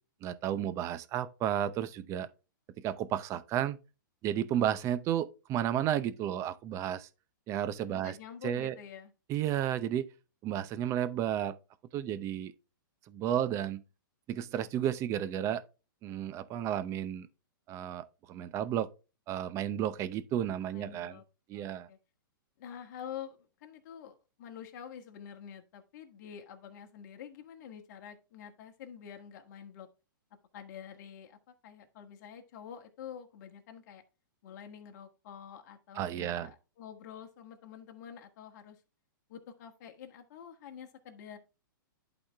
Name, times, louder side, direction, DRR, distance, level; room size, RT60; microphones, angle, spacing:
voice 1, 0.2-2.3 2.8-3.8 4.2-7.1 7.5-8.1 8.4-8.7 9.3-10.1 10.4-11.6 11.9-12.5 13.1-13.8 14.3-15.6 16.0-17.3 17.7-18.9 19.3-21.2 21.5-21.9 36.0-36.5, right 10 dB, 25° right, 0.6 m, -32 dB
voice 2, 7.9-9.1 20.7-21.2 21.5-22.0 22.6-29.9 30.5-31.4 31.6-34.0 34.4-38.8 39.3-41.4, left 8 dB, 50° left, 1.6 m, -47 dB
11.5 x 4.2 x 3.4 m
hypercardioid pair, 145°, 12 cm